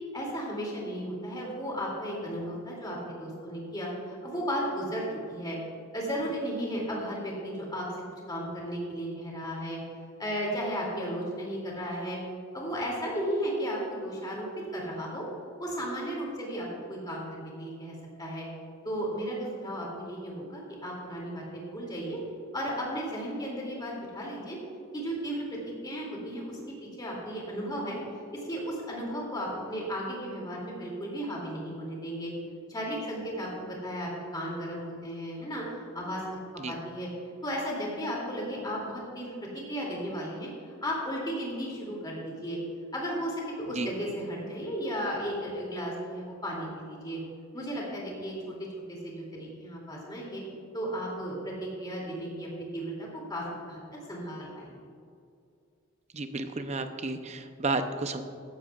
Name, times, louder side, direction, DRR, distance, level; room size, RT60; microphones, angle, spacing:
voice 1, 0.1-5.6 5.9-7.9 8.3-9.8 10.2-12.2 12.5-15.2 15.6-18.5 18.8-19.4 19.6-22.2 22.5-24.6 24.9-25.4 25.8-28.0 28.3-32.3 32.7-36.2 36.7-37.1 37.4-42.6 42.9-47.2 47.5-48.5 48.9-50.4 50.7-53.8 54.1-54.7, equal, 20° left, -3 dB, 2.6 m, -34 dB
voice 2, 56.1-58.2, right 3 dB, 30° right, 8 dB, 0.6 m, -32 dB
14.5 x 11.5 x 2.4 m, 2.4 s
head